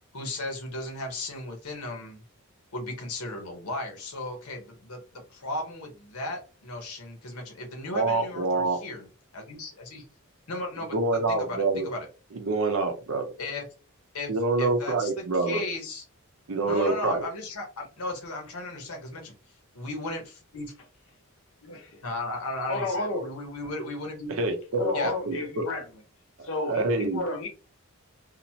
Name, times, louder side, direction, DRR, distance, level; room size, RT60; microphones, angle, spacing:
voice 1, 0.1-2.2 2.7-10.0 10.5-12.1 13.4-13.6 14.1-14.3 14.6-16.0 16.7-19.2 19.8-20.2 20.5-20.7 22.0-24.3 24.9-25.1, left 2 dB, 85° left, 1.0 m, -35 dB
voice 2, 7.9-8.8 10.9-11.9 12.4-13.3 14.3-15.6 16.5-17.2 24.4-25.0 25.2-25.6 26.7-27.2, right 3 dB, 70° right, 0.6 m, -26 dB
voice 3, 22.7-23.3 24.8-25.8 26.4-27.5, left 2 dB, 60° left, 0.7 m, -31 dB
2.9 x 2.1 x 2.7 m
head